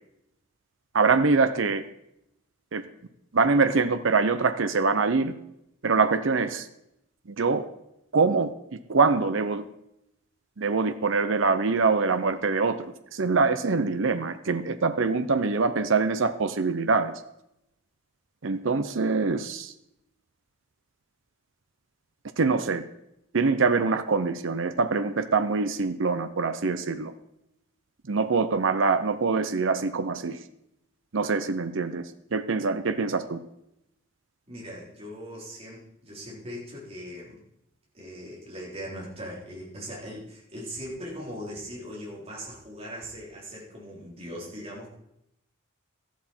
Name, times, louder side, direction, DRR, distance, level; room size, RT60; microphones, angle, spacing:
voice 1, 0.9-1.8 2.7-2.8 3.3-5.3 5.8-6.6 7.4-7.6 8.1-8.5 8.9-9.6 10.6-12.8 13.1-17.1 18.4-19.7 22.4-22.8 23.3-27.1 28.1-30.4 31.1-32.0 32.3-33.4, right 4 dB, 60° right, 10 dB, 0.7 m, -24 dB
voice 2, 34.5-37.4 37.9-44.9, equal, 30° right, -5 dB, 4.1 m, -40 dB
13.5 x 11.5 x 4.5 m, 0.81 s
head